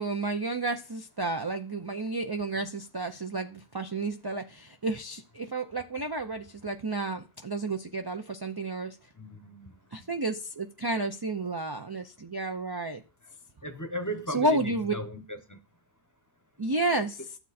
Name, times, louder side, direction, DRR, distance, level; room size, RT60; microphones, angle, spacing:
voice 1, 0.0-9.0 9.9-13.0 14.3-14.9 16.6-17.2, right 2 dB, 30° right, 0.5 m, -31 dB
voice 2, 9.2-9.7 13.6-15.6, right 1 dB, 20° left, 0.9 m, -36 dB
12.0 x 7.4 x 4.2 m
omnidirectional pair, 1.1 m